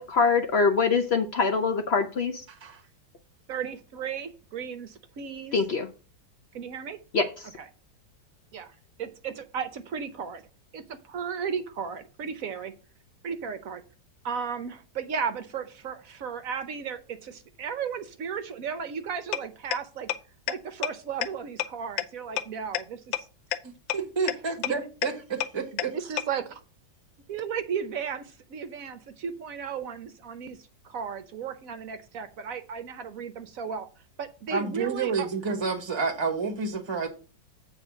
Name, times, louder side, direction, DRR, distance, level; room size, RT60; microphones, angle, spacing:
voice 1, 0.0-2.4 5.5-5.9 7.1-7.3, left 4 dB, 70° left, 0.6 m, -24 dB
voice 2, 2.5-2.8 23.6-26.0 34.5-37.1, right 4 dB, 20° right, 1.0 m, -30 dB
voice 3, 3.5-5.6 6.5-7.0 7.6-7.7 8.5-10.4 10.7-12.7 13.2-13.8 14.2-20.1 20.5-23.3 24.6-24.7 25.7-26.6 27.3-33.9 34.2-35.3, right 7 dB, 60° right, 0.9 m, -35 dB
sound 1, 19.3-19.4 19.7-19.8 20.1-20.2 20.5-20.6 20.8-20.9 21.2-21.3 21.6-21.7 22.0-22.1 22.4-22.5 22.7-22.8 23.1-23.2 23.5-23.6 23.9-24.0 24.3-24.4 24.6-24.7 25.0-25.1 25.4-25.5 25.8-25.9 26.2-26.3, left 13 dB, 90° left, 1.4 m, -26 dB
8.1 x 3.9 x 6.1 m
omnidirectional pair, 2.0 m